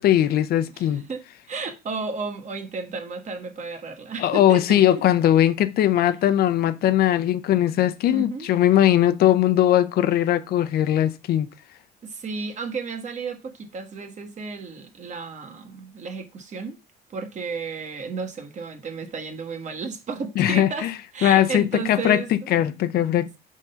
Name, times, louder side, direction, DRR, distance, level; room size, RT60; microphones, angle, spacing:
voice 1, 0.0-1.1 4.2-11.5 20.4-20.9 21.2-23.4, left 12 dB, 65° left, 0.6 m, -20 dB
voice 2, 0.8-5.0 8.1-8.5 12.0-16.8 17.1-22.3, right 5 dB, 45° right, 1.4 m, -33 dB
5.3 x 3.7 x 5.5 m
cardioid pair, 110°, 17 cm